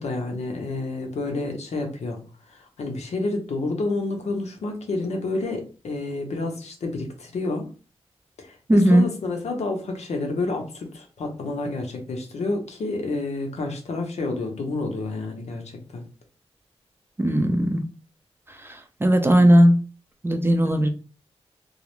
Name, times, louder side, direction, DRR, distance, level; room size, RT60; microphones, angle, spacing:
voice 1, 0.0-2.2 2.5-7.7 8.4-16.0 20.6-20.7, left 2 dB, 80° left, 3 dB, 0.6 m, -29 dB
voice 2, 8.7-9.0 17.2-17.8 19.0-19.8 20.2-20.9, equal, 20° right, 6 dB, 0.4 m, -17 dB
2.4 x 2.0 x 2.9 m, 0.35 s
wide cardioid pair, 75°, 11 cm